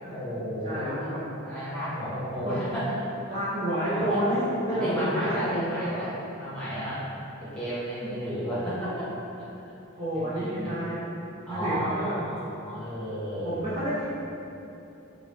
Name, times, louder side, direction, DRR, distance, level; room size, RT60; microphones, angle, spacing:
voice 1, 0.1-1.1 1.4-3.0 4.0-4.2 4.7-6.1 6.4-7.0 7.4-9.5 10.1-10.7 11.5-13.5, equal, 5° left, -12 dB, 1.1 m, -33 dB
voice 2, 0.6-1.2 2.5-2.7 3.3-6.0 8.0-8.2 10.0-12.1 13.4-14.0, equal, 25° right, -12 dB, 0.5 m, -30 dB
2.9 x 2.6 x 3.1 m, 2.9 s
head